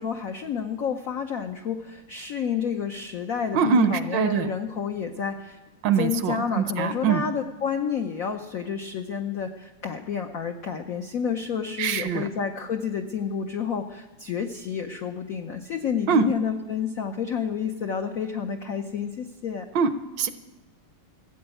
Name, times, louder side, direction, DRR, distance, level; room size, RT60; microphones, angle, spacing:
voice 1, 0.0-5.6 6.0-19.7, left 7 dB, 85° left, 5 dB, 0.7 m, -30 dB
voice 2, 3.5-4.5 5.8-7.2 11.8-12.3 16.1-16.3 19.7-20.3, right 6 dB, 70° right, 11 dB, 1.2 m, -23 dB
15.0 x 7.8 x 9.0 m, 1.2 s
omnidirectional pair, 2.4 m